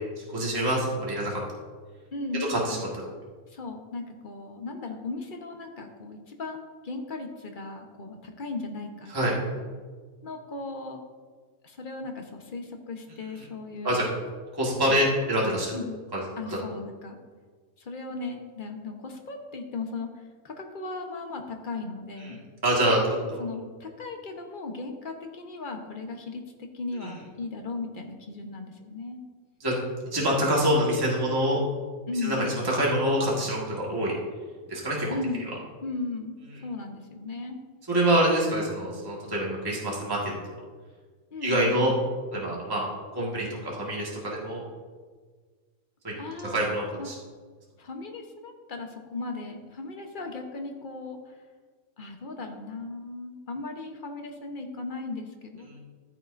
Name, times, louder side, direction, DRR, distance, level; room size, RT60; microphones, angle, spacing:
voice 1, 0.2-1.4 2.5-2.8 9.1-9.3 13.8-14.0 14.6-15.7 16.1-16.2 22.6-23.0 23.3-23.5 27.0-27.1 29.6-29.7 30.1-31.6 32.2-34.1 34.7-35.1 37.9-40.3 41.4-41.9 42.3-42.8 43.2-44.6 46.0-46.1 46.4-47.1 55.7-55.8, right 1 dB, 15° right, -5 dB, 1.8 m, -25 dB
voice 2, 2.1-2.8 3.5-9.6 10.2-11.0 11.6-14.0 14.9-15.0 15.7-16.0 16.4-17.2 17.8-22.4 22.9-23.1 23.4-29.2 32.1-32.6 35.1-35.5 35.8-37.6 41.3-41.9 46.2-46.6 47.0-47.2 47.8-51.4 52.0-55.8, left 3 dB, 35° left, 3 dB, 1.1 m, -37 dB
14.5 x 8.9 x 2.6 m, 1.5 s
omnidirectional pair, 1.5 m